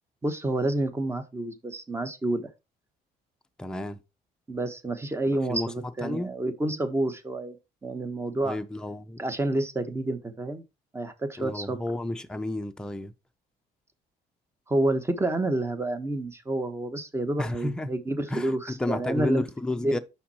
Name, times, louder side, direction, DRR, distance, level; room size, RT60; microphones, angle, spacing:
voice 1, 0.2-2.5 4.5-7.6 7.8-8.6 9.2-10.6 10.9-11.8 14.7-19.4 19.8-20.0, right 2 dB, 15° right, 1.1 m, -29 dB
voice 2, 3.6-4.0 5.5-5.7 6.0-6.3 8.4-9.2 11.4-13.1 17.4-17.9 18.3-20.0, left 1 dB, 5° left, 0.6 m, -31 dB
5.8 x 4.6 x 4.2 m
cardioid pair, 110°, 17 cm